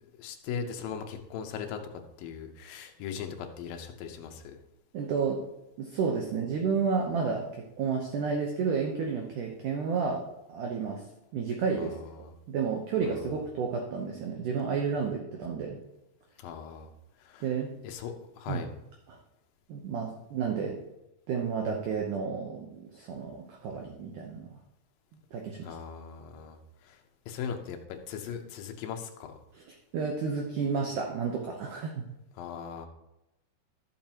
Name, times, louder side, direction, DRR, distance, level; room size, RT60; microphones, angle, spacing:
voice 1, 0.2-4.6 11.8-12.3 13.1-13.2 16.4-16.9 17.2-17.5 17.8-18.7 25.6-26.6 26.8-27.0 27.3-29.4 32.4-32.9, left 7 dB, 70° left, 4 dB, 2.4 m, -39 dB
voice 2, 4.9-5.4 5.8-10.2 10.5-11.0 11.3-11.9 12.5-15.8 17.4-17.7 18.5-18.6 19.1-19.2 19.7-20.8 21.3-24.5 25.3-25.7 29.5-32.0, right 5 dB, 70° right, 1 dB, 2.0 m, -31 dB
13.0 x 7.3 x 2.9 m, 0.91 s
omnidirectional pair, 4.7 m